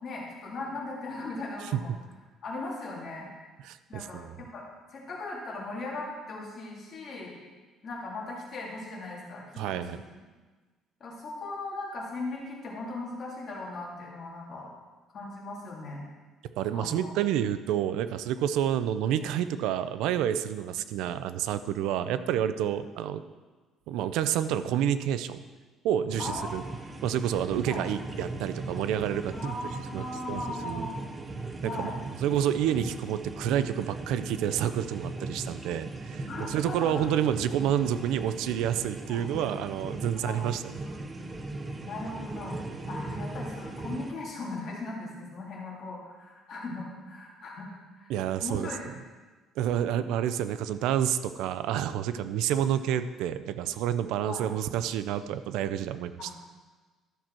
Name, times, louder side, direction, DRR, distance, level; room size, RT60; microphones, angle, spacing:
voice 1, 0.0-1.9 2.4-3.3 3.9-4.7 4.9-7.4 7.8-10.0 11.0-14.7 15.1-16.0 16.7-17.1 19.5-19.6 21.9-22.1 26.2-26.6 27.7-27.8 29.3-31.0 31.6-32.0 36.3-37.1 39.1-39.3 40.2-40.5 40.8-42.6 42.9-47.7 48.0-48.1 48.4-48.9 52.1-52.3 54.2-54.4 56.2-56.3, left 2 dB, 40° left, -3 dB, 2.6 m, -38 dB
voice 2, 3.6-4.3 9.6-10.0 16.6-23.2 23.9-25.4 25.8-26.6 27.0-29.6 29.9-30.9 31.6-31.9 32.2-40.6 48.1-48.7 49.6-56.3, right 10 dB, 85° right, 12 dB, 0.5 m, -29 dB
sound 1, 26.1-44.1, right 2 dB, 20° right, 0.7 m, -38 dB
13.0 x 6.1 x 4.4 m, 1.3 s
cardioid pair, 145°, 0 cm